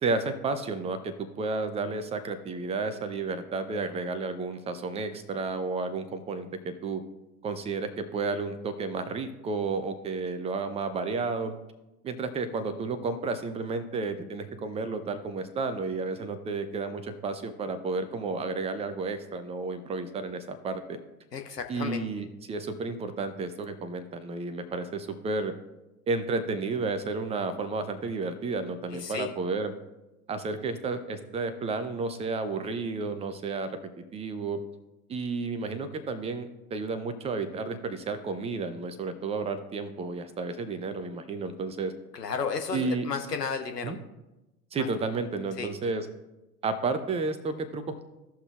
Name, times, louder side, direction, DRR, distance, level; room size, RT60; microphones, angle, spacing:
voice 1, 0.0-7.0 7.4-11.6 12.0-21.0 21.7-25.5 26.1-29.7 30.3-33.7 34.1-34.6 35.1-41.9 42.7-43.1 43.8-44.0 44.7-46.1 46.6-48.1, right 3 dB, 15° right, 9 dB, 0.6 m, -32 dB
voice 2, 21.3-22.0 28.9-29.3 42.1-44.0 44.8-44.9 45.6-45.7, left 5 dB, 80° left, 5 dB, 1.0 m, -33 dB
16.0 x 5.8 x 2.4 m, 0.99 s
figure-of-eight pair, 85°, 47 cm